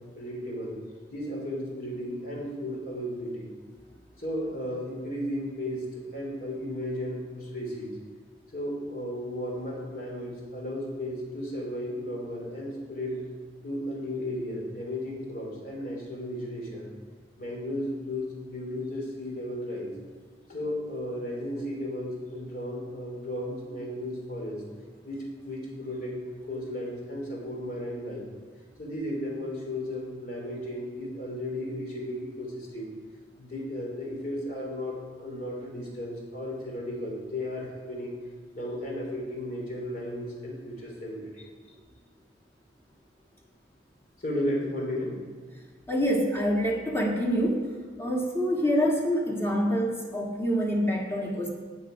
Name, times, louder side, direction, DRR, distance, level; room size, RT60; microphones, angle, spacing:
voice 1, 0.2-0.8 1.1-3.5 4.2-7.9 8.5-13.2 13.6-16.9 17.4-19.9 20.5-24.6 25.0-28.3 28.8-32.9 33.4-38.1 38.5-41.5 44.2-45.2, left 1 dB, 50° left, -1 dB, 3.2 m, -34 dB
voice 2, 45.9-51.5, equal, 15° left, -1 dB, 1.8 m, -26 dB
17.5 x 6.3 x 5.0 m, 1.5 s
head